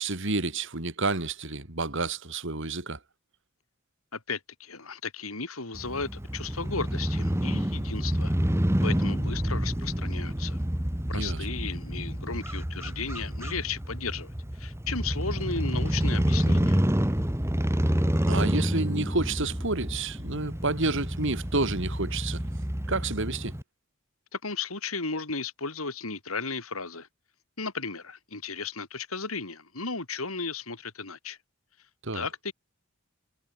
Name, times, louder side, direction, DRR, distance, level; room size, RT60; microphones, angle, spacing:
voice 1, 0.0-3.0 11.1-11.4 18.3-22.4 22.9-23.6 32.0-32.3, right 3 dB, 60° right, 2.9 m, -29 dB
voice 2, 4.1-8.3 8.8-10.6 11.1-16.8 24.3-27.1 27.6-31.4 32.1-32.5, left 4 dB, 75° left, 4.1 m, -35 dB
Crow / Motorcycle, 5.7-23.6, equal, 10° right, 2.0 m, -28 dB
head